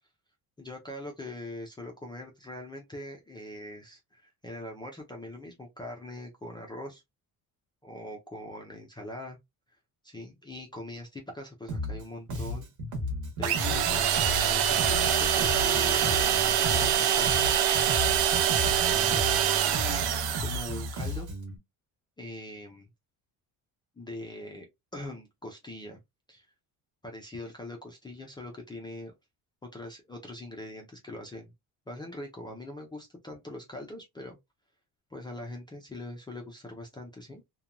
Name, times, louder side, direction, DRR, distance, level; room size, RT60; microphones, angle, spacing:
voice 1, 0.6-7.0 7.8-9.4 10.0-12.7 13.4-17.4 18.5-19.5 19.9-21.3 22.2-22.9 24.0-26.0 26.3-26.5 27.0-29.1 29.7-31.5 31.9-34.4 35.1-37.4, left 1 dB, 15° left, 0.3 m, -42 dB
Bass guitar, 11.7-12.0 12.3-17.0 17.2-21.6, left 1 dB, 50° right, 0.9 m, -34 dB
sound 1, 13.4-21.0, right 10 dB, 75° right, 0.6 m, -25 dB
2.9 x 2.2 x 2.4 m
cardioid pair, 175°, 38 cm